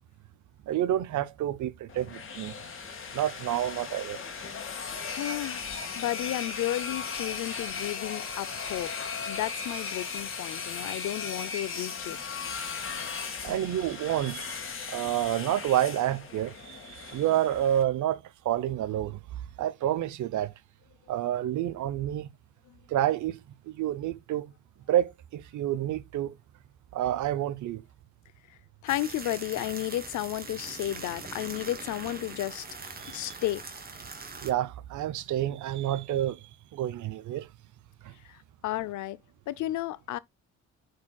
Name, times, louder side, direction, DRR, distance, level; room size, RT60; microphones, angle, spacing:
voice 1, 0.7-2.5 3.1-4.2 13.4-14.5 14.9-19.2 19.6-20.5 21.1-22.3 22.9-23.4 23.7-24.5 24.9-26.4 26.9-27.8 33.0-33.2 34.4-36.4 36.7-37.5 38.0-38.1, right 12 dB, 75° right, 0.8 m, -29 dB
sound 1, 1.9-17.8, left 5 dB, 45° left, 1.9 m, -37 dB
voice 2, 5.1-9.0 9.3-12.2 22.7-22.8 28.5-32.6 33.1-33.6 38.2-38.4 38.6-39.2 39.5-40.2, left 14 dB, 75° left, 0.7 m, -33 dB
sound 2, 28.9-34.5, right 4 dB, 30° right, 1.9 m, -42 dB
10.5 x 4.7 x 2.3 m
cardioid pair, 90°, 30 cm